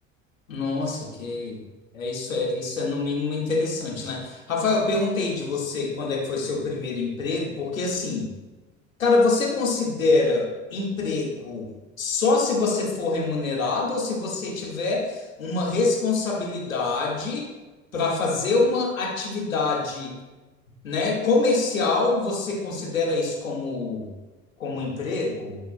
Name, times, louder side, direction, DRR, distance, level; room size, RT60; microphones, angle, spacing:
voice 1, 0.5-1.6 1.9-8.3 9.0-11.7 12.0-17.5 17.9-20.2 20.8-24.1 24.6-25.6, left 3 dB, 90° left, -2 dB, 1.8 m, -25 dB
14.0 x 7.0 x 2.2 m, 1.2 s
hypercardioid pair, 65°, 39 cm